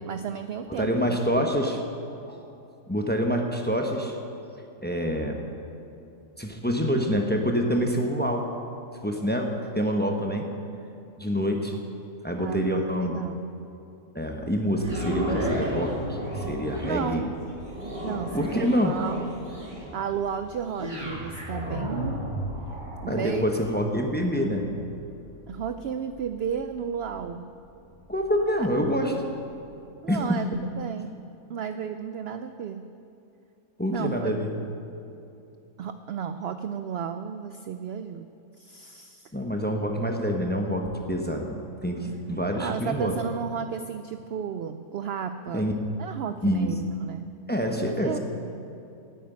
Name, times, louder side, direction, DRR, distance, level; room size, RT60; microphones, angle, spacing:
voice 1, 0.1-1.4 12.4-13.4 16.8-17.3 18.0-19.3 19.9-22.2 23.0-23.5 25.5-27.5 28.6-28.7 30.0-30.5 30.8-31.2 31.5-32.9 33.9-34.3 35.8-38.3 38.6-39.3 42.6-45.7 46.0-47.3 48.0-48.2, right 7 dB, 75° right, 9 dB, 0.5 m, -33 dB
voice 2, 0.7-1.8 2.3-2.4 2.9-4.2 4.8-5.4 6.4-8.5 9.0-10.5 11.2-11.7 12.2-13.2 14.1-17.2 18.3-19.0 23.1-24.7 28.1-29.1 30.1-30.5 33.8-34.6 39.3-43.1 45.5-45.7 46.4-46.8 47.5-48.2, equal, 10° left, 2 dB, 0.8 m, -26 dB
sound 1, 14.7-29.0 29.5-29.6, equal, 30° right, 2.3 m, -35 dB
10.0 x 9.3 x 9.3 m, 2.7 s
omnidirectional pair, 1.6 m